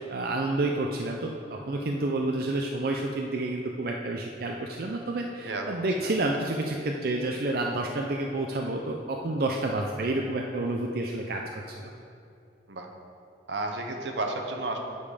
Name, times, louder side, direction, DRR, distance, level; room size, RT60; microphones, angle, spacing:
voice 1, 0.1-11.9, right 2 dB, 55° right, 1 dB, 0.5 m, -29 dB
voice 2, 13.5-14.8, right 2 dB, 85° right, 3 dB, 0.9 m, -32 dB
8.8 x 5.3 x 4.9 m, 2.6 s
head